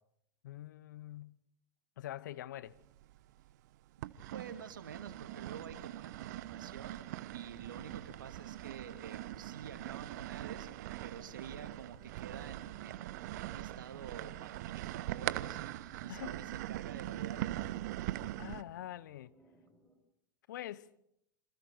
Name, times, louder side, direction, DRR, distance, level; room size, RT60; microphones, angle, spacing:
voice 1, 0.4-1.4 2.0-2.8 16.1-16.4 18.4-19.3 20.5-20.9, left 13 dB, 70° left, 0.9 m, -44 dB
sound 1, 2.8-3.5 4.0-18.6, right 15 dB, 60° right, 0.9 m, -42 dB
voice 2, 4.2-7.0 7.3-10.7 11.0-17.5, right 7 dB, 75° right, 2.5 m, -49 dB
sound 2, 17.8-20.0, right 1 dB, 10° left, 6.5 m, -66 dB
28.0 x 26.5 x 4.5 m
hypercardioid pair, 90°, 11 cm